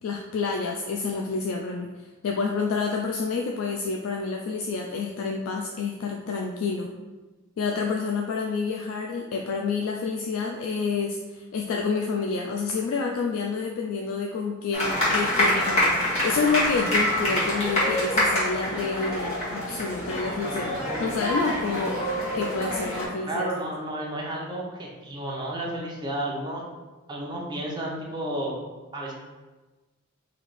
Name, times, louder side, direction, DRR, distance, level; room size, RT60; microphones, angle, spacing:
voice 1, 0.0-1.9 2.2-6.9 7.6-20.7 21.0-22.0 22.3-23.5, left 4 dB, 80° left, 0 dB, 0.3 m, -28 dB
sound 1, 14.7-23.1, left 1 dB, 35° left, 1.4 m, -26 dB
voice 2, 23.3-26.6 27.1-28.6 28.9-29.1, right 1 dB, 20° right, -3 dB, 0.7 m, -32 dB
3.2 x 2.8 x 4.0 m, 1.2 s
head